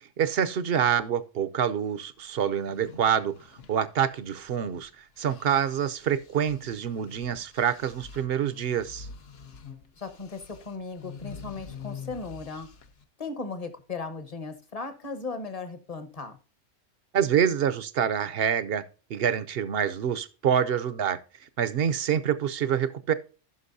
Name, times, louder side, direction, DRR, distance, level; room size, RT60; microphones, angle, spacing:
voice 1, 0.2-3.3 3.7-9.1 17.1-18.8 19.1-21.2 21.6-23.1, right 8 dB, 60° right, 0.8 m, -26 dB
sound 1, 2.5-4.8 5.2-13.0, left 6 dB, 60° left, 1.0 m, -46 dB
voice 2, 10.0-12.7 13.2-16.4, left 4 dB, 30° left, 1.1 m, -37 dB
15.0 x 5.9 x 2.6 m
omnidirectional pair, 1.3 m